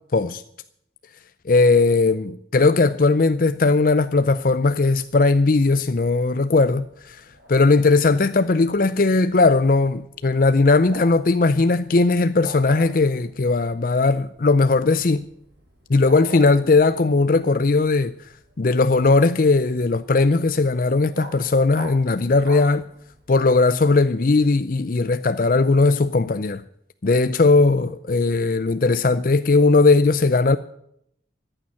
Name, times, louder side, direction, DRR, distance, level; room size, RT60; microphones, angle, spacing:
voice 1, 0.1-0.4 1.5-7.2 7.5-15.2 15.9-18.1 18.6-22.8 23.3-26.6 27.0-30.6, left 3 dB, 50° left, 0.5 m, -18 dB
Bark, 4.0-23.3, equal, 75° right, 5.7 m, -45 dB
14.0 x 9.0 x 8.5 m
head